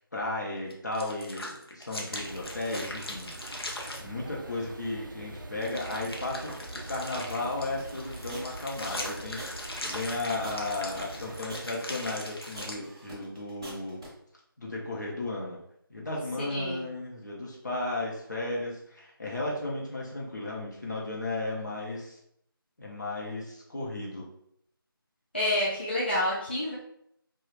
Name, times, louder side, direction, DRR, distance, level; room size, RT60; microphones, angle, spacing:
voice 1, 0.0-3.3 3.7-6.5 6.9-14.0 14.6-15.6 15.9-22.2 22.8-24.3, left 2 dB, 50° left, -3 dB, 0.8 m, -34 dB
sound 1, 0.7-4.0 5.6-12.7, left 1 dB, 85° left, 0.7 m, -40 dB
sound 2, 2.1-11.4, right 2 dB, 60° right, 0.4 m, -44 dB
sound 3, 7.8-14.1, right 1 dB, 15° right, 0.6 m, -45 dB
voice 2, 16.4-16.9 25.3-26.7, left 1 dB, 25° left, -7 dB, 0.4 m, -28 dB
2.4 x 2.3 x 3.2 m, 0.73 s
figure-of-eight pair, 175°, 12 cm